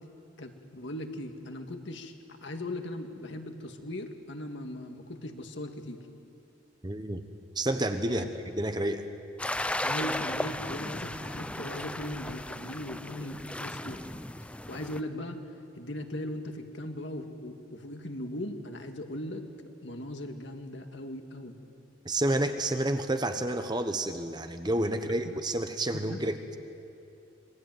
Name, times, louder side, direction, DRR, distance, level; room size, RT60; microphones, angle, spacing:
voice 1, 0.4-2.1 2.4-6.1 8.1-8.3 9.8-14.0 14.7-15.4 15.8-19.5 19.8-21.6 25.0-25.4 25.9-26.2, left 1 dB, 65° left, 5 dB, 2.1 m, -39 dB
voice 2, 6.8-7.2 7.5-9.0 22.0-26.6, right 1 dB, 20° right, 8 dB, 1.1 m, -30 dB
sound 1, 9.4-15.0, left 1 dB, 5° left, 0.5 m, -35 dB
26.0 x 22.5 x 9.3 m, 2.7 s
head